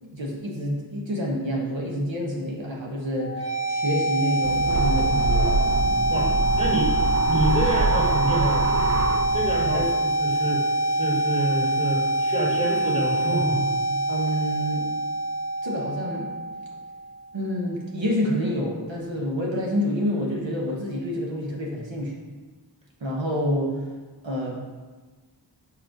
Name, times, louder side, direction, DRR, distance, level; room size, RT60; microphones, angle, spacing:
voice 1, 0.0-3.3 3.7-5.7 9.7-9.8 14.1-14.9 15.6-16.3 17.3-22.1 23.0-23.7 24.2-24.6, equal, 80° right, -3 dB, 1.2 m, -28 dB
sound 1, 3.2-17.2, right 1 dB, 25° left, 0.9 m, -25 dB
sound 2, 4.4-9.8, right 4 dB, 40° right, 0.4 m, -26 dB
voice 2, 6.1-6.9 7.3-8.7 9.3-13.8, right 2 dB, 15° right, -4 dB, 1.6 m, -27 dB
4.8 x 4.4 x 5.0 m, 1.3 s
wide cardioid pair, 55°, 45 cm